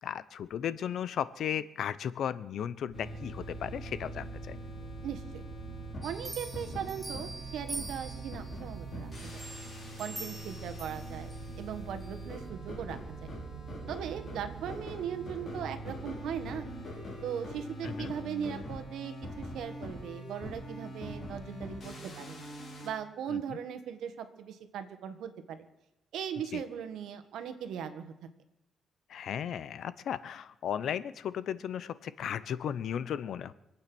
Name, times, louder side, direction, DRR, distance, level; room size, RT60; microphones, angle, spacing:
voice 1, 0.0-4.6 17.8-18.1 23.3-23.6 26.5-26.6 29.1-33.5, left 9 dB, 65° left, 16 dB, 0.7 m, -35 dB
sound 1, 2.9-22.9, equal, 40° left, 5.0 m, -43 dB
sound 2, 2.9-16.9, right 5 dB, 65° right, 2.5 m, -46 dB
voice 2, 5.0-5.4 6.0-9.4 10.0-13.3 13.9-16.7 17.2-22.4 22.8-25.7 26.1-28.1, right 8 dB, 85° right, 8 dB, 1.6 m, -39 dB
sound 3, 6.0-8.6 9.1-11.5 12.0-12.1, right 2 dB, 10° right, 2.3 m, -44 dB
25.5 x 8.9 x 6.2 m, 0.92 s
cardioid pair, 130°, 0 cm